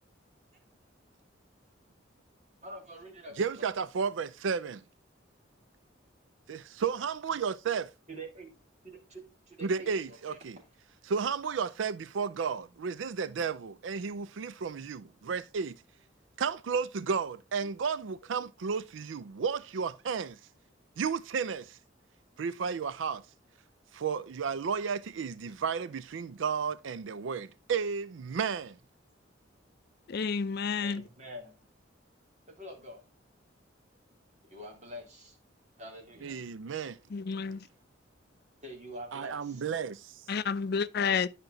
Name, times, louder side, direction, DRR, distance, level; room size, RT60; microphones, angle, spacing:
voice 1, 2.6-3.5 8.1-8.5 8.8-10.5 30.8-31.6 32.5-33.0 34.4-35.4 35.8-36.4 38.6-39.6, equal, 40° right, 3.0 m, -46 dB
voice 2, 3.4-4.8 6.5-7.9 9.6-10.6 11.1-15.8 16.4-20.4 21.0-21.8 22.4-23.2 23.9-28.8 36.2-36.9 39.1-40.1, right 6 dB, 90° right, 0.4 m, -33 dB
voice 3, 30.1-31.0 37.1-37.7 40.3-41.3, left 6 dB, 55° left, 0.5 m, -30 dB
10.5 x 5.8 x 3.8 m
head